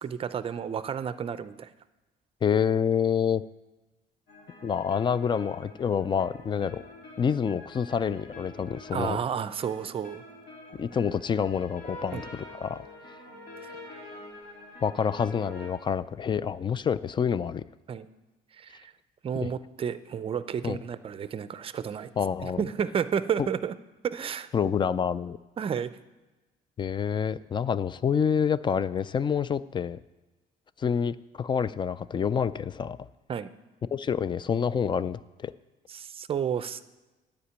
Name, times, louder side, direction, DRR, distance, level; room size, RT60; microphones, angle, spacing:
voice 1, 0.0-1.7 8.9-10.2 12.1-12.2 13.6-13.8 17.9-18.1 18.6-18.9 19.2-22.1 22.4-23.8 24.0-24.5 25.6-26.0 33.3-33.5 35.9-36.8, right 7 dB, 35° right, 14 dB, 0.5 m, -31 dB
voice 2, 2.4-3.4 4.6-6.8 7.2-9.2 10.8-12.9 14.8-17.6 19.4-19.5 20.6-20.8 22.2-22.7 23.4-23.5 24.5-25.4 26.8-30.0 30.8-33.0 33.9-35.5, left 7 dB, 30° left, 17 dB, 0.3 m, -27 dB
sound 1, 4.3-15.7, left 1 dB, 70° left, 3.3 m, -47 dB
10.0 x 5.1 x 8.1 m, 1.2 s
cardioid pair, 110°, 17 cm